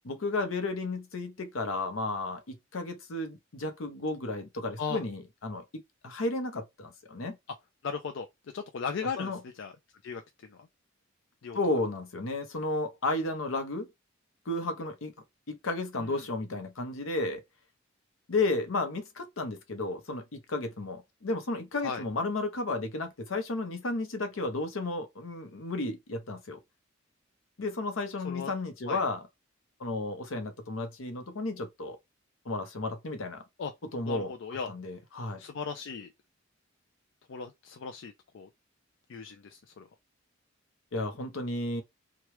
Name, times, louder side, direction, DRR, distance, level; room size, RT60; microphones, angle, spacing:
voice 1, 0.0-7.4 9.2-9.4 11.5-13.9 14.5-15.1 15.5-17.4 18.3-26.6 27.6-29.2 29.8-32.0 32.4-33.4 33.9-34.3 34.7-35.4 40.9-41.8, left 2 dB, 80° left, 0.8 m, -33 dB
voice 2, 7.8-8.3 8.5-9.7 10.0-10.7 11.4-11.6 16.0-16.2 21.8-22.0 28.2-28.5 28.9-29.0 33.6-33.7 34.1-34.7 35.4-36.1 37.3-38.5 39.1-39.9, left 5 dB, 65° left, 0.4 m, -37 dB
3.0 x 2.3 x 3.1 m
head